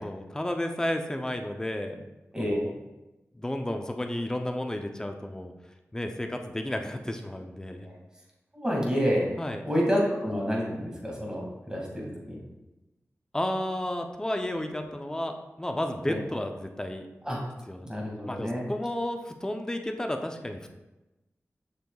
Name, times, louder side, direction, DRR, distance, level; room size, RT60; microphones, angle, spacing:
voice 1, 0.0-2.0 2.3-2.7 3.4-5.5 5.9-7.9 9.4-9.6 13.3-17.0 17.7-17.9 18.2-20.7, left 1 dB, 15° left, 4 dB, 0.6 m, -32 dB
voice 2, 8.5-9.2 9.7-12.4 16.1-16.2 17.2-17.4 17.9-18.6, equal, 15° right, -3 dB, 2.2 m, -28 dB
6.6 x 6.4 x 2.4 m, 1.0 s
wide cardioid pair, 60°, 5 cm